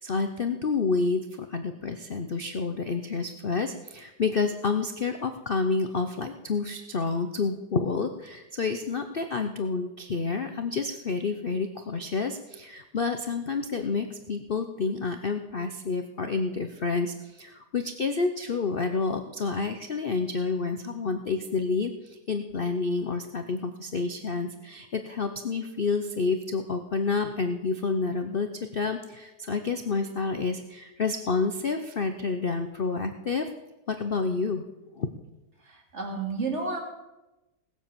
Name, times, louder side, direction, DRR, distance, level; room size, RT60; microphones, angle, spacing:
voice 1, 0.0-33.5 33.9-34.6 35.0-35.1, left 4 dB, 75° left, 7 dB, 0.5 m, -29 dB
voice 2, 35.6-36.8, right 3 dB, 35° right, 1 dB, 2.9 m, -31 dB
18.5 x 7.6 x 7.0 m, 1.0 s
omnidirectional pair, 2.2 m